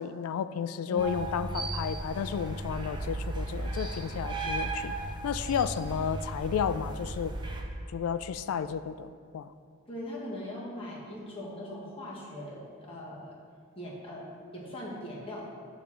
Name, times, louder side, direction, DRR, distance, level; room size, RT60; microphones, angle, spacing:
voice 1, 0.0-5.0 5.2-7.3 7.9-9.5, left 7 dB, 80° left, 14 dB, 0.3 m, -32 dB
voice 2, 0.8-1.2 9.9-13.3 13.7-15.5, left 1 dB, 25° left, -5 dB, 1.4 m, -40 dB
sound 1, 1.0-7.6, right 2 dB, 20° right, 0.6 m, -35 dB
7.0 x 3.7 x 5.8 m, 2.2 s
head